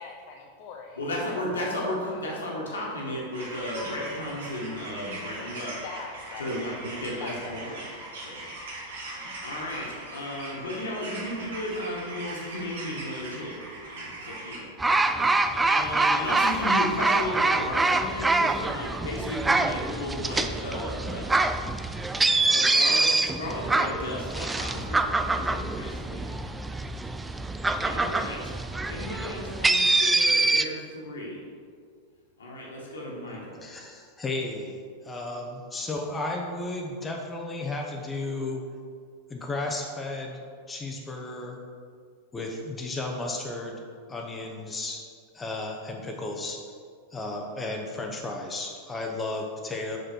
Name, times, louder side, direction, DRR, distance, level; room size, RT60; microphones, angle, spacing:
voice 1, 0.0-1.4 2.1-2.2 5.8-6.5 7.2-7.6, left 5 dB, 50° left, 1 dB, 0.6 m, -42 dB
voice 2, 1.0-5.8 6.4-7.8 8.2-8.5 9.0-13.7 14.5-14.6 15.1-21.3 22.3-26.4 27.8-28.4 28.9-31.4 32.4-33.6, left 1 dB, 75° left, -3 dB, 1.7 m, -34 dB
sound 1, 3.3-14.6, right 2 dB, 65° right, 1.5 m, -40 dB
sound 2, 14.8-30.6, right 2 dB, 10° right, 0.3 m, -25 dB
voice 3, 33.6-38.7 39.3-40.4 40.7-41.6 42.3-43.8 44.1-46.7 47.1-50.0, left 2 dB, 15° left, 1 dB, 0.8 m, -34 dB
6.0 x 5.0 x 4.4 m, 2.1 s
figure-of-eight pair, 90°, 0 cm